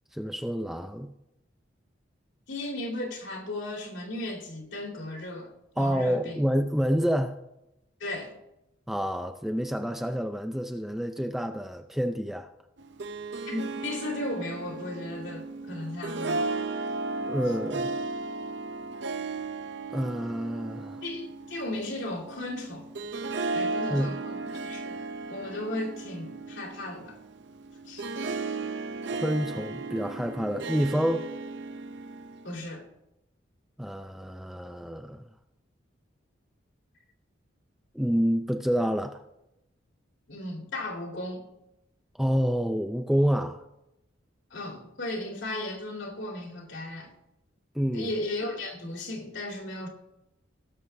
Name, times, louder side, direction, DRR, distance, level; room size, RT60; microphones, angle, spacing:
voice 1, 0.1-1.1 5.8-7.4 8.9-12.5 17.2-17.9 19.9-21.0 23.9-24.1 29.1-31.3 33.8-35.3 37.9-39.2 42.2-43.6 47.7-48.1, equal, ahead, 6 dB, 0.4 m, -28 dB
voice 2, 2.5-6.4 8.0-8.3 13.5-16.5 21.0-22.9 23.5-25.0 25.3-27.2 27.9-28.3 32.4-32.9 40.3-41.4 44.5-47.1 47.9-49.9, left 1 dB, 65° left, 1 dB, 2.7 m, -36 dB
Harp, 12.8-32.6, right 3 dB, 60° right, 0.7 m, -35 dB
18.5 x 6.8 x 3.4 m, 0.86 s
head